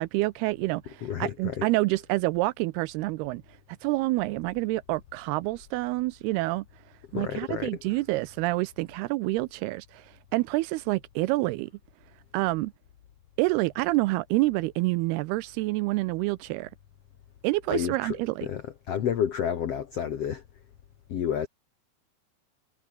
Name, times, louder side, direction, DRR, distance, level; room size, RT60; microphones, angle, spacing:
voice 1, 0.0-3.4 3.8-6.7 7.1-10.1 10.3-11.7 12.3-12.7 13.4-16.7 17.4-18.5, right 20 dB, 80° right, 2.4 m, -27 dB
voice 2, 1.0-1.7 7.1-8.0 17.7-20.4 21.1-21.5, left 9 dB, 75° left, 1.4 m, -30 dB
omnidirectional pair, 4.9 m